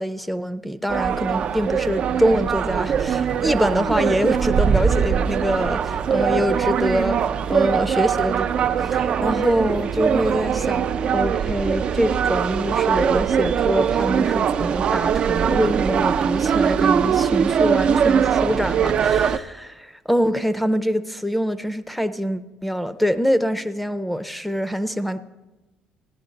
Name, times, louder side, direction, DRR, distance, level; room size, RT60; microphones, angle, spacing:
voice 1, 0.0-7.2 7.5-25.2, equal, ahead, 13 dB, 0.5 m, -24 dB
sound 1, 0.9-19.4, right 7 dB, 50° right, 0.4 m, -21 dB
15.0 x 10.5 x 3.9 m, 1.0 s
cardioid pair, 110°, 2 cm